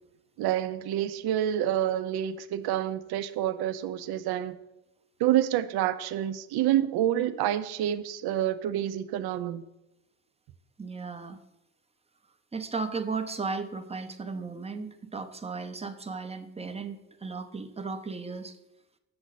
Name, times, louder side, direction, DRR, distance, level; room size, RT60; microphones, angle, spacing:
voice 1, 0.4-4.6 5.2-9.7, right 11 dB, 60° right, 0.6 m, -28 dB
voice 2, 10.8-11.4 12.5-18.6, right 4 dB, 15° right, 0.6 m, -35 dB
7.8 x 6.2 x 4.0 m
cardioid pair, 90°, 43 cm